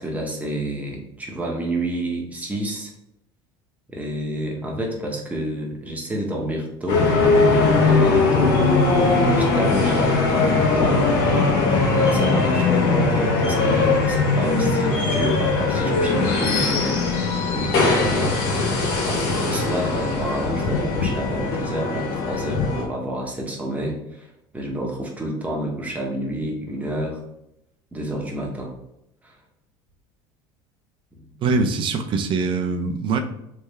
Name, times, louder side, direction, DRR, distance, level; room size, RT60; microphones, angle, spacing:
voice 1, 0.0-2.9 3.9-8.6 8.9-11.0 11.9-18.4 18.7-27.2 27.9-28.7 29.2-29.4 31.1-31.2, right 1 dB, 10° right, -1 dB, 1.1 m, -29 dB
sound 1, 6.9-22.8, left 3 dB, 80° left, 1.1 m, -20 dB
voice 2, 31.4-33.2, right 4 dB, 45° right, 6 dB, 0.6 m, -23 dB
3.4 x 3.2 x 3.3 m, 0.83 s
supercardioid pair, 110°, 12 cm